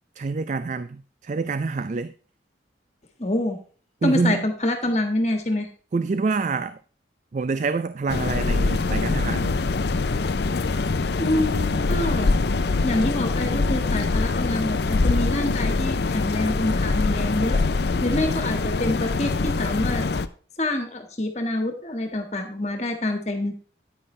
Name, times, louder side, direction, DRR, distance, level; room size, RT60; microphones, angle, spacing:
voice 1, 0.2-2.1 4.0-4.4 5.9-6.8 7.3-9.6, right 4 dB, 40° right, 0.3 m, -26 dB
voice 2, 3.2-3.6 4.0-5.7 11.2-12.3 12.8-17.6 18.0-20.0 20.6-23.5, left 1 dB, 35° left, 1.6 m, -26 dB
sound 1, 8.1-20.3, left 3 dB, 60° left, 0.5 m, -23 dB
9.8 x 9.5 x 3.2 m
head